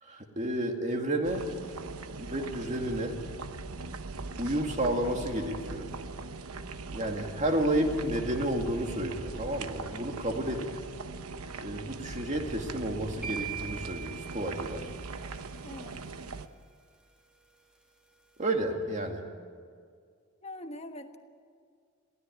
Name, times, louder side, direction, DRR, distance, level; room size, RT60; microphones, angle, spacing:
voice 1, 0.0-1.5 2.2-3.2 4.4-5.9 6.9-10.7 11.6-14.9 18.4-19.2, right 1 dB, 35° right, 3 dB, 2.3 m, -31 dB
sound 1, 1.2-16.5, right 4 dB, 80° right, 1.0 m, -41 dB
sound 2, 3.5-14.2, right 1 dB, 55° right, 1.8 m, -47 dB
sound 3, 13.2-15.3, right 8 dB, 5° right, 2.1 m, -41 dB
voice 2, 15.6-16.1 20.4-21.2, left 1 dB, 30° left, 6 dB, 1.3 m, -43 dB
23.0 x 16.0 x 9.3 m, 2.1 s
head